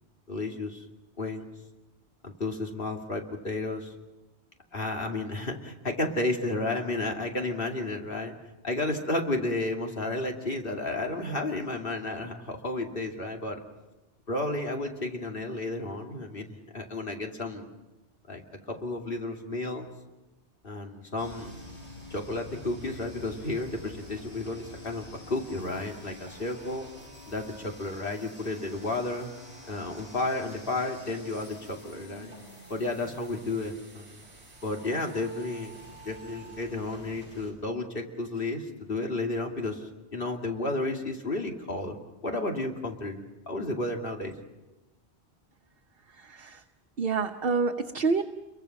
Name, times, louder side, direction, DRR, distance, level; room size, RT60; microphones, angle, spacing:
voice 1, 0.3-0.8 1.2-1.5 2.2-3.9 4.7-8.3 8.6-13.6 14.3-17.7 18.3-19.9 20.6-21.5 22.1-26.9 27.3-29.3 29.7-32.3 32.7-34.2 34.6-35.8 36.0-42.0 42.2-44.3, left 2 dB, 55° left, 2 dB, 2.7 m, -32 dB
sound 1, 21.2-37.5, left 1 dB, 35° left, 6.5 m, -48 dB
voice 2, 46.1-46.6 47.0-48.2, right 4 dB, 60° right, 3 dB, 1.2 m, -28 dB
29.5 x 23.0 x 5.9 m, 1.1 s
omnidirectional pair, 1.1 m